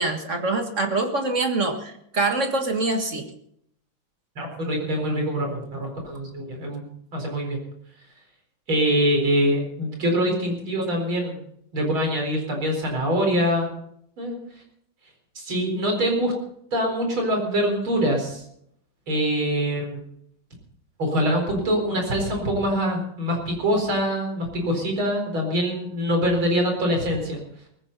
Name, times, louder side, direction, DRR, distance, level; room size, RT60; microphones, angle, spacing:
voice 1, 0.0-3.2, right 2 dB, 40° right, 5 dB, 1.9 m, -24 dB
voice 2, 4.4-6.8 7.1-7.6 8.7-11.4 11.7-13.7 14.2-14.4 15.4-16.3 16.7-18.4 19.1-20.0 21.0-27.4, equal, 90° right, 2 dB, 5.3 m, -24 dB
19.0 x 15.5 x 4.1 m, 0.70 s
omnidirectional pair, 2.2 m